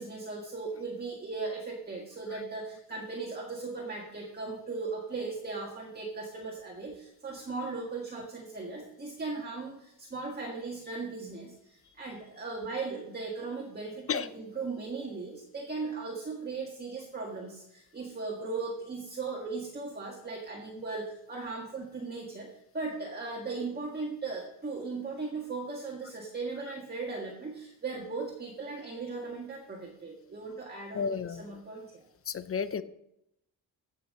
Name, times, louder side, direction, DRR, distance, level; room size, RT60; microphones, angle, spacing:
voice 1, 0.0-31.1 31.4-32.0, right 3 dB, 25° right, -1 dB, 1.8 m, -38 dB
voice 2, 30.9-31.5 32.3-32.8, left 6 dB, 35° left, 13 dB, 0.6 m, -32 dB
16.0 x 5.7 x 6.5 m, 0.81 s
wide cardioid pair, 155°, 39 cm